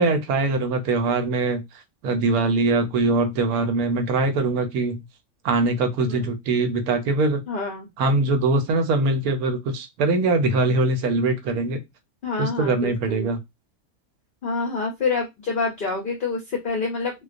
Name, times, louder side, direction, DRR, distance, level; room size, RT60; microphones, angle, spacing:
voice 1, 0.0-1.6 2.0-5.0 5.4-7.4 8.0-11.8 12.4-13.4, right 3 dB, 90° right, 1.1 m, -22 dB
voice 2, 7.5-7.9 10.5-10.7 12.2-13.3 14.4-17.1, left 4 dB, 60° left, 0.5 m, -27 dB
2.3 x 2.2 x 2.4 m
omnidirectional pair, 1.5 m